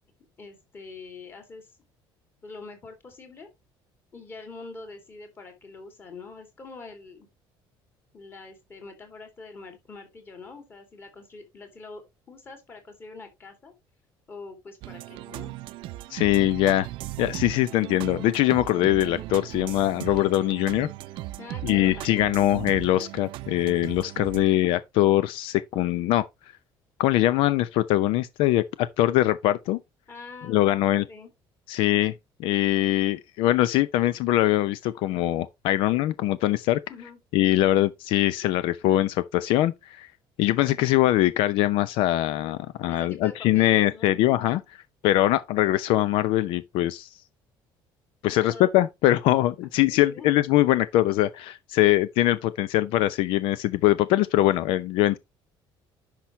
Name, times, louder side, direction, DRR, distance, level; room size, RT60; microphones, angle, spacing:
voice 1, 0.4-1.7 2.4-3.5 4.1-7.3 8.1-12.0 12.3-13.7 14.3-15.6 21.4-22.6 23.0-23.1 30.1-31.3 36.9-37.2 42.9-44.2 48.4-48.7 49.9-50.3, left 3 dB, 25° left, 2.5 m, -44 dB
sound 1, 14.8-24.4, right 17 dB, 70° right, 0.6 m, -37 dB
voice 2, 16.1-16.9 17.2-20.9 21.6-26.3 27.0-29.8 30.5-31.0 31.7-32.1 32.4-36.8 37.3-40.1 40.4-44.6 45.0-47.1 48.2-55.2, left 15 dB, 75° left, 0.6 m, -22 dB
10.0 x 6.0 x 3.1 m
cardioid pair, 180°, 9 cm